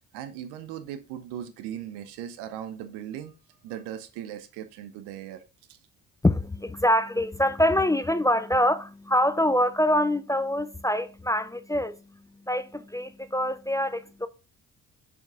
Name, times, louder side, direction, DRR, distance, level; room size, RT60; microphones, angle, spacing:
voice 1, 0.1-3.3 3.6-5.4, right 10 dB, 75° right, 1.0 m, -38 dB
voice 2, 6.2-14.3, left 1 dB, 10° left, 0.5 m, -25 dB
6.6 x 5.6 x 3.7 m
hypercardioid pair, 50°, 41 cm